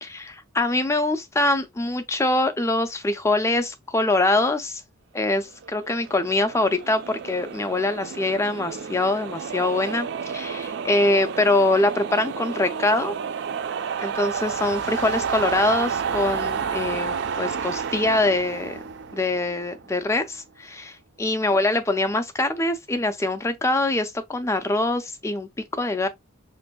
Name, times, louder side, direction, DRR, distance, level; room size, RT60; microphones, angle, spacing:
voice 1, 0.0-4.8 5.1-13.1 14.0-18.8 19.1-26.1, left 2 dB, 15° left, 0.4 m, -24 dB
sound 1, 5.6-19.9, right 6 dB, 55° right, 0.3 m, -31 dB
5.9 x 2.6 x 2.2 m
head